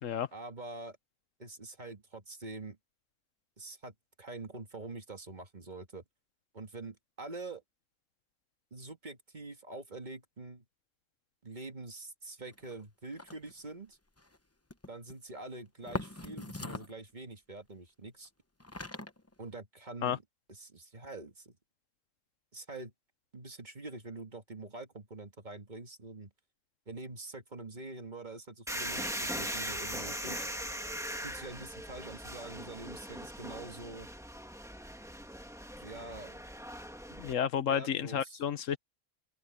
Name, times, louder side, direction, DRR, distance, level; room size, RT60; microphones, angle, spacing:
voice 1, 0.3-1.0 1.4-2.8 3.6-6.0 6.5-7.6 8.7-10.6 11.4-14.0 14.9-18.3 19.4-20.2 20.5-21.6 22.5-22.9 23.3-26.3 26.9-30.4 31.2-34.1 35.8-36.4 37.1-37.2 37.7-38.4, right 2 dB, 40° right, 1.8 m, -45 dB
sound 1, 12.5-12.8 13.1-13.7 14.2-14.4 14.7-15.1 15.8-17.0 18.2-18.3 18.6-19.5, left 2 dB, 15° left, 0.8 m, -41 dB
sound 2, 28.7-37.3, equal, ahead, 1.7 m, -40 dB
voice 2, 37.2-38.8, left 8 dB, 90° left, 1.3 m, -31 dB
open air
omnidirectional pair, 1.3 m